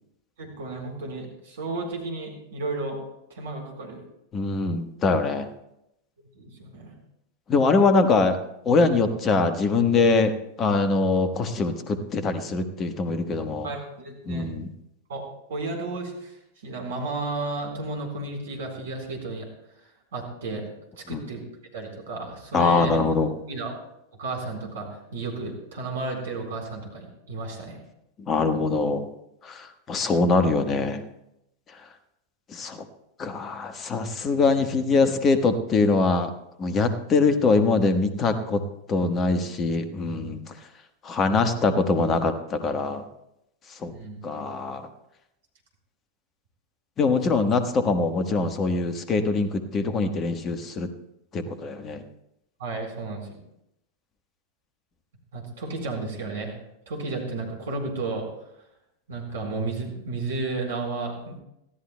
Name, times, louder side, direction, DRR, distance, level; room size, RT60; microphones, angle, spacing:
voice 1, 0.4-3.0 3.3-4.0 6.4-6.9 13.6-14.5 15.1-16.3 16.6-19.5 20.1-20.7 21.0-21.4 21.7-23.0 23.5-23.7 24.2-27.8 43.9-44.2 52.6-53.4 55.3-56.6 56.9-58.2 59.1-61.4, right 3 dB, 60° right, 2 dB, 4.2 m, -33 dB
voice 2, 4.3-5.5 7.5-8.4 8.6-13.7 14.3-14.7 21.1-21.2 22.5-23.3 28.2-29.1 29.4-31.0 32.5-32.8 33.2-36.3 36.6-38.6 38.9-40.5 41.0-43.0 43.8-43.9 44.2-44.9 47.0-50.9 51.3-52.0, left 3 dB, 25° left, 9 dB, 1.3 m, -23 dB
24.5 x 15.5 x 2.2 m, 0.83 s
figure-of-eight pair, 90°, 0 cm